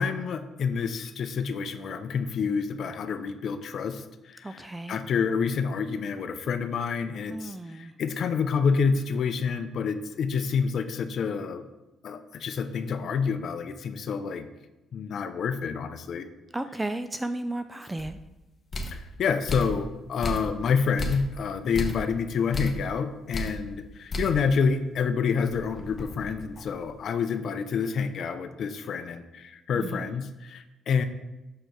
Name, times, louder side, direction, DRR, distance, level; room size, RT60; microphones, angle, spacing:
voice 1, 0.0-11.7 12.0-14.5 14.9-16.3 18.9-31.0, left 6 dB, 65° left, 10 dB, 0.6 m, -28 dB
voice 2, 4.4-5.0 7.3-7.9 16.5-18.2 29.8-30.1, right 1 dB, 15° right, 9 dB, 0.3 m, -34 dB
sound 1, 18.0-18.1 18.7-19.1 19.5-19.8 20.2-20.6 21.0-21.3 21.7-22.1 22.5-22.9 23.3-23.6 24.1-24.4 24.8-24.9 25.4-26.9, equal, 35° left, 1.1 m, -33 dB
6.5 x 4.5 x 4.6 m, 1.0 s
cardioid pair, 90°, 0 cm